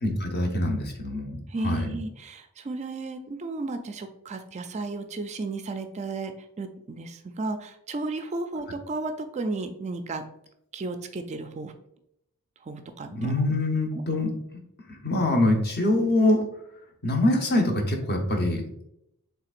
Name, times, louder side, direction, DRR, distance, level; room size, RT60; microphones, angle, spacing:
voice 1, 0.0-1.4 1.6-1.9 13.1-14.3 14.9-16.4 17.0-18.6, left 1 dB, 45° left, 2 dB, 0.9 m, -24 dB
voice 2, 1.5-10.2 10.7-11.7 12.6-13.3, right 3 dB, 30° right, 8 dB, 0.3 m, -34 dB
5.7 x 3.7 x 2.5 m, 0.77 s
head